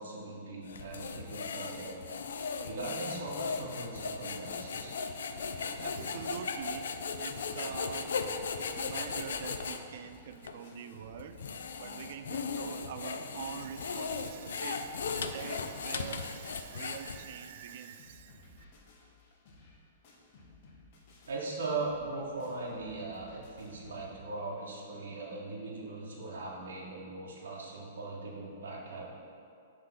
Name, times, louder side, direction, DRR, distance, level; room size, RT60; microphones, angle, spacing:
voice 1, 0.0-2.0 2.6-4.9 21.3-29.2, right 3 dB, 90° right, -3 dB, 1.0 m, -39 dB
sound 1, 0.7-9.8 10.4-10.6 11.2-17.5, left 5 dB, 85° left, 0.4 m, -37 dB
sound 2, 5.3-5.8 6.2-6.3 6.5-6.6 7.1-7.2 7.4-8.0 8.3-24.2, left 2 dB, 40° left, 0.8 m, -58 dB
voice 2, 5.8-8.1 8.7-18.6, right 8 dB, 50° right, 9 dB, 0.3 m, -45 dB
5.8 x 3.3 x 5.4 m, 2.5 s
hypercardioid pair, 165°, 0 cm